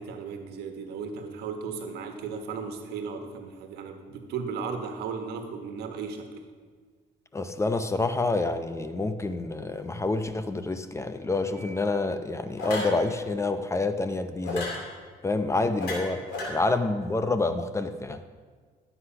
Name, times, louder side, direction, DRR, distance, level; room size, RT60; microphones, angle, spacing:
voice 1, 0.0-6.3, right 5 dB, 75° right, 5 dB, 1.5 m, -35 dB
voice 2, 7.3-14.7 15.2-16.2 16.5-18.2, left 3 dB, 15° left, 9 dB, 0.6 m, -28 dB
sound 1, 11.5-11.8 12.6-13.0 14.4-14.8 15.8-16.5, left 2 dB, 85° left, 3.1 m, -33 dB
11.5 x 8.0 x 5.7 m, 1.5 s
cardioid pair, 110°, 17 cm